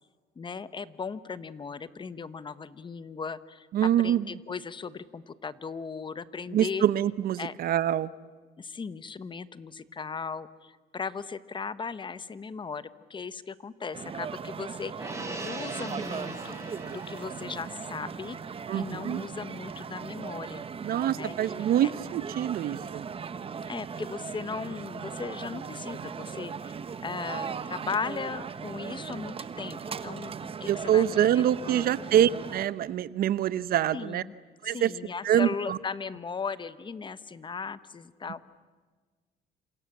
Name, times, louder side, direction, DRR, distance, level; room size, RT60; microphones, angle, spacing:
voice 1, 0.4-3.7 4.0-6.8 7.4-7.5 8.6-16.6 16.9-18.4 18.7-20.7 21.1-21.5 21.8-21.9 23.6-26.7 27.0-31.9 33.9-34.3 34.6-38.4, left 5 dB, 30° left, 14 dB, 1.2 m, -37 dB
voice 2, 3.7-4.2 6.5-8.1 18.7-19.3 20.8-23.0 30.7-34.2 34.6-34.9 35.2-35.8, right 11 dB, 60° right, 17 dB, 0.9 m, -25 dB
sound 1, 13.9-32.7, right 6 dB, 35° right, 1.3 m, -38 dB
Gong, 15.0-21.6 21.9-22.1, right 2 dB, 15° right, 5.5 m, -44 dB
29.5 x 27.0 x 7.4 m, 1.4 s
cardioid pair, 110°, 17 cm